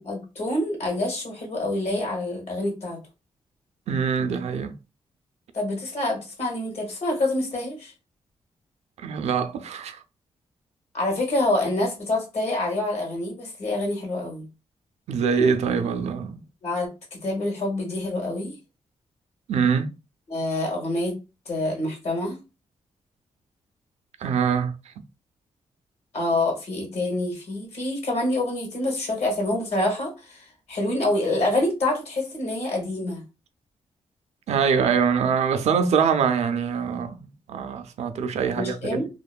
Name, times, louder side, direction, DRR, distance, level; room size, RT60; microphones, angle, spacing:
voice 1, 0.0-3.0 5.5-7.9 10.9-14.5 16.6-18.5 20.3-21.2 21.5-22.4 26.1-33.2 38.5-39.1, left 2 dB, 70° left, 1.4 m, -26 dB
voice 2, 3.9-4.7 9.0-10.0 15.1-16.4 19.5-19.9 24.2-24.7 34.5-39.0, right 6 dB, 75° right, 0.4 m, -24 dB
2.9 x 2.1 x 2.4 m
cardioid pair, 90°, 12 cm